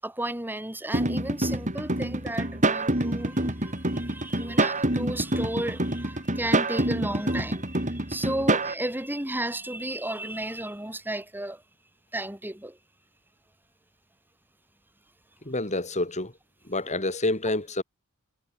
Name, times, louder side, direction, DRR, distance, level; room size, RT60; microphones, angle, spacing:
voice 1, 0.0-11.6 12.1-12.8, right 1 dB, 10° right, 6.2 m, -33 dB
sound 1, 0.9-8.7, right 1 dB, 35° right, 6.1 m, -26 dB
voice 2, 15.5-16.3 16.7-17.8, left 2 dB, 35° left, 7.5 m, -28 dB
head